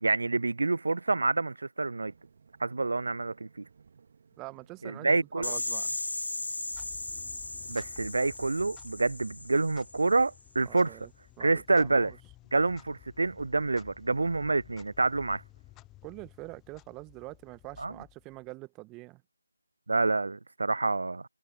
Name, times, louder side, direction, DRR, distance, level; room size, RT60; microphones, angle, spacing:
voice 1, 0.0-2.1 2.6-3.6 4.8-5.5 7.7-11.1 11.4-12.1 12.5-15.4 17.8-17.9 19.9-21.2, right 3 dB, 55° right, 0.3 m, -27 dB
sound 1, 2.1-8.3, right 5 dB, 35° right, 1.9 m, -61 dB
voice 2, 4.4-6.0 10.6-11.1 11.4-12.1 16.0-19.2, right 22 dB, 10° right, 1.3 m, -45 dB
sound 2, 5.4-10.2, left 2 dB, 65° left, 0.4 m, -37 dB
Clock, 6.6-18.5, left 17 dB, 10° left, 0.5 m, -55 dB
figure-of-eight pair, 160°, 0 cm